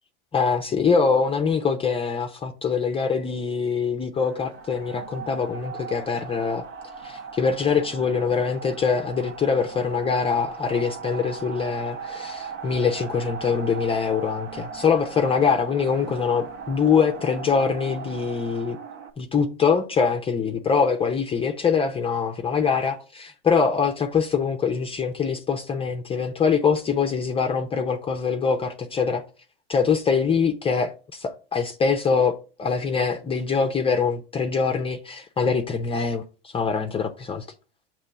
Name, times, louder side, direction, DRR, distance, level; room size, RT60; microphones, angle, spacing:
voice 1, 0.3-6.7 7.0-18.8 19.2-29.2 29.7-37.5, left 5 dB, 20° left, 0.6 m, -24 dB
sound 1, 4.1-19.1, right 5 dB, 60° right, 1.3 m, -38 dB
6.5 x 3.1 x 5.7 m
hypercardioid pair, 110°, 29 cm